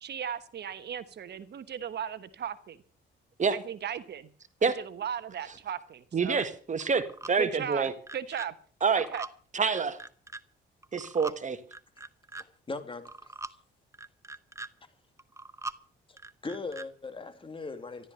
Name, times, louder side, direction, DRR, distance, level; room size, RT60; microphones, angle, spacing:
voice 1, 0.0-2.8 3.5-4.3 4.6-6.4 7.4-7.8 8.1-8.5 8.9-9.2, right 8 dB, 60° right, 1.1 m, -36 dB
voice 2, 6.1-7.9 8.8-9.1 9.5-10.0 10.9-11.6, right 5 dB, 40° right, 1.8 m, -27 dB
sound 1, 6.3-6.5 6.8-7.3 7.7-8.5 8.8-9.3 9.7-10.4 10.8-11.4 11.7-12.4 12.9-13.5 13.9-14.7 15.2-15.8 16.2-16.9, right 3 dB, 15° right, 0.8 m, -42 dB
voice 3, 12.4-13.3 16.4-18.1, left 3 dB, 25° left, 2.6 m, -39 dB
13.5 x 12.5 x 6.9 m
cardioid pair, 90°, 20 cm